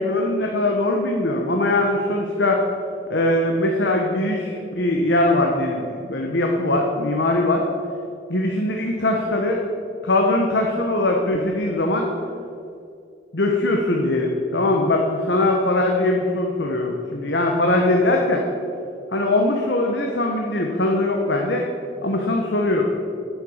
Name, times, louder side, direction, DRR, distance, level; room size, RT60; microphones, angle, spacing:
voice 1, 0.0-2.6 3.1-7.6 8.3-9.6 10.0-12.1 13.3-18.4 19.1-21.6 22.0-22.9, left 2 dB, 80° left, 1 dB, 1.2 m, -21 dB
10.0 x 8.1 x 7.3 m, 2.5 s
head